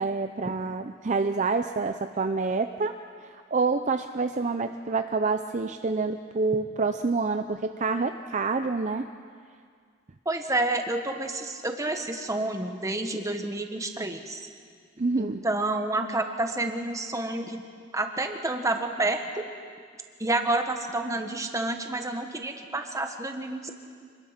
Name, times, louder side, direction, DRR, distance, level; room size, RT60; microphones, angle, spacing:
voice 1, 0.0-2.9 3.5-9.1 15.0-15.4, right 4 dB, 35° right, 7 dB, 0.6 m, -27 dB
voice 2, 10.2-14.5 15.2-17.6 17.9-19.2 20.2-23.7, right 2 dB, 15° right, 5 dB, 1.4 m, -29 dB
26.5 x 21.0 x 5.9 m, 2.1 s
head